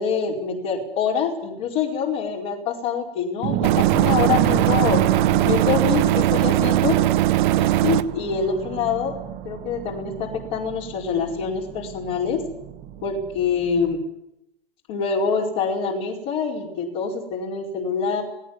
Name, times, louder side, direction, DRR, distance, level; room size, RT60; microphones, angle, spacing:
voice 1, 0.0-5.1 5.4-7.0 7.6-9.2 9.4-12.5 13.0-14.0 14.9-18.2, left 6 dB, 45° left, -2 dB, 5.0 m, -25 dB
sound 1, 3.4-14.0, right 11 dB, 35° right, 1.6 m, -30 dB
sound 2, 3.6-8.0, right 14 dB, 55° right, 1.2 m, -19 dB
17.5 x 17.5 x 9.7 m, 0.83 s
hypercardioid pair, 125°, 29 cm